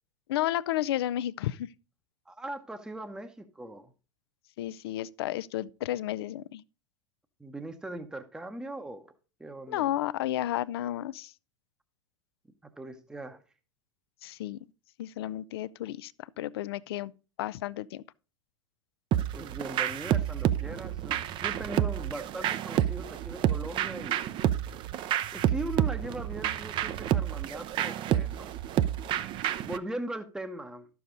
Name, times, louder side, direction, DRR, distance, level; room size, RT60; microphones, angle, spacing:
voice 1, 0.3-1.7 4.6-6.6 9.7-11.3 14.2-14.6 15.0-16.1 16.4-17.1 17.4-18.0, left 13 dB, 55° left, 0.4 m, -32 dB
voice 2, 2.3-3.9 7.4-9.1 9.4-9.9 12.6-13.4 19.2-24.2 25.3-28.5 29.6-30.9, right 1 dB, 5° right, 0.8 m, -40 dB
sound 1, 19.1-29.8, right 11 dB, 35° right, 0.6 m, -29 dB
11.5 x 7.0 x 3.9 m
figure-of-eight pair, 90°, 15 cm